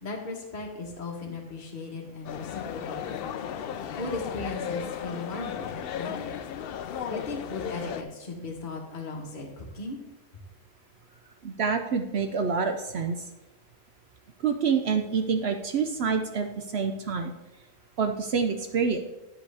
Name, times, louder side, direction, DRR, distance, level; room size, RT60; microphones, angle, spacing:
voice 1, 0.0-3.2 3.9-6.4 7.1-10.0, left 3 dB, 35° left, -1 dB, 1.3 m, -37 dB
sound 1, 2.2-8.0, left 8 dB, 85° left, 0.5 m, -35 dB
voice 2, 11.4-13.2 14.4-17.3 18.0-19.0, right 5 dB, 60° right, 6 dB, 0.7 m, -27 dB
9.6 x 7.9 x 3.4 m, 0.99 s
omnidirectional pair, 1.6 m